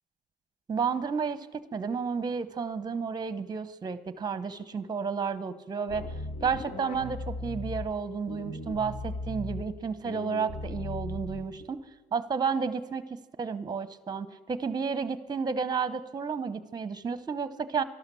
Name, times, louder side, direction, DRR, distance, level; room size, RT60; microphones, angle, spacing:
voice 1, 0.7-6.1 6.4-11.8 12.1-17.8, right 5 dB, 25° right, 14 dB, 0.8 m, -32 dB
sound 1, 5.9-7.9 8.3-9.6 10.0-11.6, left 2 dB, 70° left, 2.3 m, -37 dB
12.5 x 12.0 x 6.9 m, 1.2 s
cardioid pair, 110°, 17 cm